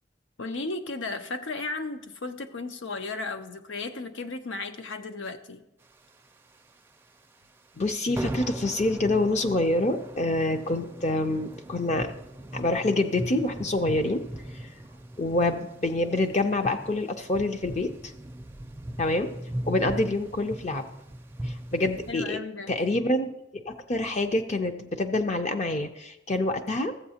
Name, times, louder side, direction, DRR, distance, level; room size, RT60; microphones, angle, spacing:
voice 1, 0.4-5.6 22.1-22.7, left 3 dB, 85° left, 8 dB, 0.7 m, -35 dB
sound 1, 5.9-6.9 7.2-7.4 7.7-7.9 8.1-22.1, right 1 dB, 10° right, 0.4 m, -39 dB
voice 2, 7.8-12.1 12.5-14.2 14.5-14.7 15.2-17.9 19.0-19.3 19.7-20.9 21.4-22.4 22.7-26.9, left 2 dB, 40° left, 6 dB, 0.5 m, -26 dB
14.0 x 7.8 x 2.8 m, 0.87 s
head